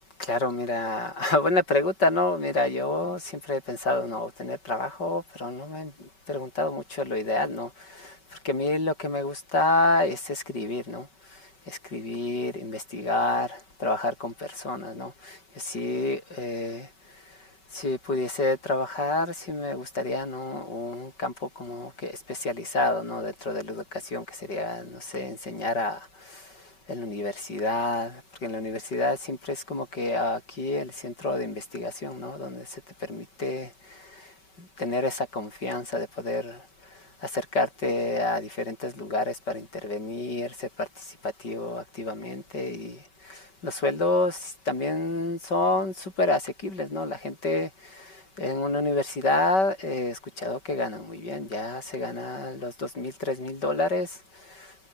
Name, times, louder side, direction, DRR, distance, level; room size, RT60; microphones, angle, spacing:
voice 1, 0.2-5.9 6.3-8.2 8.4-11.1 11.7-16.9 17.7-26.5 26.9-34.1 34.8-36.6 37.2-43.0 43.2-54.2 54.5-54.7, left 2 dB, 85° left, 8.0 m, -29 dB
omnidirectional pair, 1.8 m